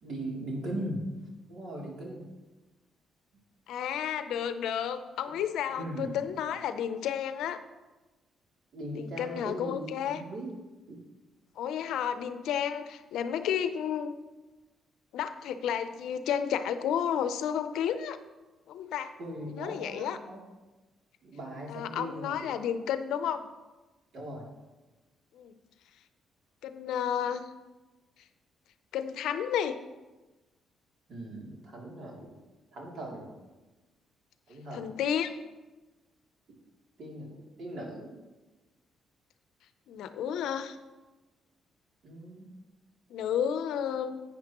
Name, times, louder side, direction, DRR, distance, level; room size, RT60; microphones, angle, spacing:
voice 1, 0.0-1.0 1.5-2.3 5.8-6.2 8.7-10.5 10.9-11.0 19.2-20.4 21.2-22.5 24.1-24.5 31.1-32.4 32.7-33.3 34.5-34.9 37.0-37.3 37.6-38.1 42.0-42.5, right 1 dB, 65° right, -2 dB, 2.9 m, -39 dB
voice 2, 3.7-7.6 9.0-10.2 11.6-14.1 15.1-18.2 18.7-19.1 19.5-20.2 21.7-23.4 25.3-25.5 26.6-27.5 28.9-29.8 34.7-35.4 39.9-40.8 43.1-44.2, left 9 dB, 85° left, 11 dB, 0.6 m, -31 dB
11.0 x 8.9 x 3.0 m, 1.2 s
cardioid pair, 90°, 0 cm